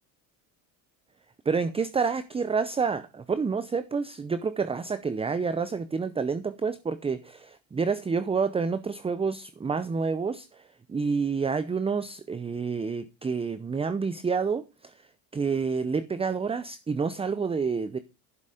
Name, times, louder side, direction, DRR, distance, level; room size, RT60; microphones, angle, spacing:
voice 1, 1.5-10.5 10.9-14.6 15.3-18.0, right 5 dB, 10° right, 0.6 m, -28 dB
11.0 x 6.5 x 5.0 m
supercardioid pair, 95°, 47 cm